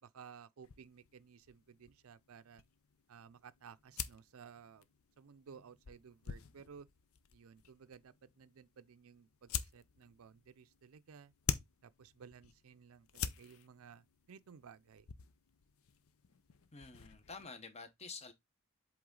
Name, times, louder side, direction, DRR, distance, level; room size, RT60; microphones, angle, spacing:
voice 1, 0.0-2.6 3.1-4.9 5.2-6.9 7.3-11.3 11.8-15.1, right 6 dB, 80° right, 0.5 m, -57 dB
sound 1, 0.6-17.5, left 7 dB, 85° left, 0.6 m, -47 dB
voice 2, 16.7-18.3, left 4 dB, 30° left, 1.0 m, -49 dB
7.8 x 3.5 x 3.8 m
head